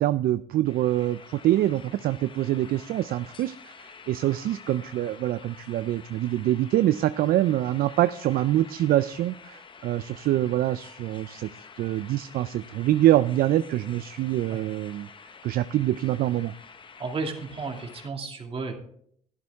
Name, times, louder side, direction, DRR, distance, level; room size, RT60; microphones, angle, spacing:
voice 1, 0.0-11.5 11.8-15.1 15.4-16.5, right 14 dB, 60° right, 14 dB, 0.4 m, -25 dB
sound 1, 0.7-18.1, left 5 dB, 30° left, 0.8 m, -48 dB
voice 2, 17.0-18.7, right 4 dB, 35° right, 2 dB, 2.4 m, -33 dB
12.5 x 11.5 x 3.5 m, 0.64 s
cardioid pair, 110°, 17 cm